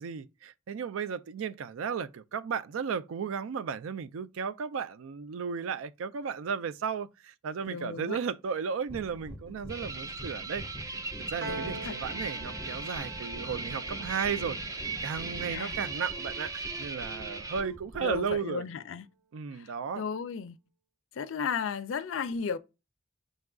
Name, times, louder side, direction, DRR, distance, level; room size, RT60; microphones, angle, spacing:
voice 1, 0.0-10.6 11.3-14.6 15.0-18.6 19.3-20.0, right 6 dB, 90° right, 0.4 m, -34 dB
voice 2, 7.7-8.2 11.4-12.0 15.5-15.8 18.0-19.1 19.5-20.6 21.1-22.6, left 6 dB, 75° left, 0.4 m, -35 dB
sound 1, 8.9-18.4, equal, 15° left, 0.7 m, -45 dB
sound 2, 9.7-17.6, right 3 dB, 15° right, 0.4 m, -38 dB
Piano, 11.4-17.9, right 4 dB, 55° right, 0.7 m, -46 dB
5.3 x 2.3 x 3.5 m
head